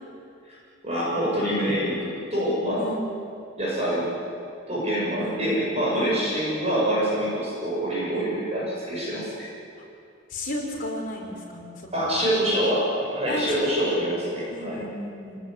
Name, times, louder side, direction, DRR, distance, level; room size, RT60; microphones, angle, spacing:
voice 1, 0.8-2.9 3.6-4.1 4.7-9.5 11.9-14.8, equal, 30° right, -6 dB, 7.2 m, -25 dB
voice 2, 2.8-3.1 5.2-5.5 5.9-6.2 8.1-8.3 10.3-12.2 13.3-13.6 14.5-15.4, equal, 40° left, 0 dB, 5.0 m, -34 dB
29.0 x 18.5 x 9.9 m, 2.5 s
head